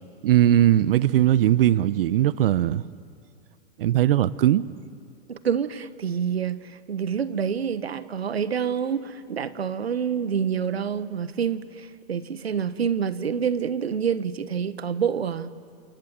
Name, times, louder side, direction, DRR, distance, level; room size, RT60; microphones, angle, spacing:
voice 1, 0.2-2.8 3.8-4.7, right 12 dB, 65° right, 0.8 m, -19 dB
voice 2, 5.3-6.6 6.9-15.5, right 7 dB, 90° right, 1.2 m, -27 dB
27.0 x 23.0 x 8.0 m
hypercardioid pair, 110°, 30 cm